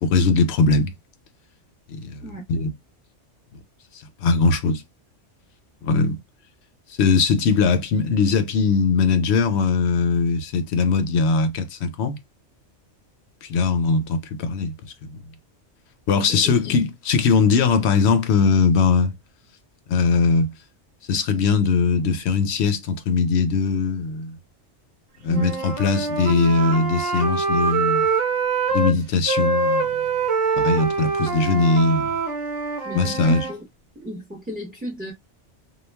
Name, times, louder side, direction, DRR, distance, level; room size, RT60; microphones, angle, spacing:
voice 1, 0.0-0.9 1.9-2.7 3.9-4.8 5.8-6.2 7.0-12.2 13.4-15.2 16.1-19.1 19.9-20.5 21.1-24.4 25.2-28.1 28.7-29.9 30.6-32.1 32.9-33.5, left 4 dB, 70° left, 0.8 m, -20 dB
voice 2, 16.1-16.5 25.3-25.7 32.8-33.6 33.9-35.1, equal, 10° right, 0.7 m, -33 dB
Wind instrument woodwind instrument, 25.3-28.9 29.3-33.5, right 4 dB, 80° right, 1.1 m, -24 dB
2.2 x 2.2 x 3.2 m
omnidirectional pair, 1.2 m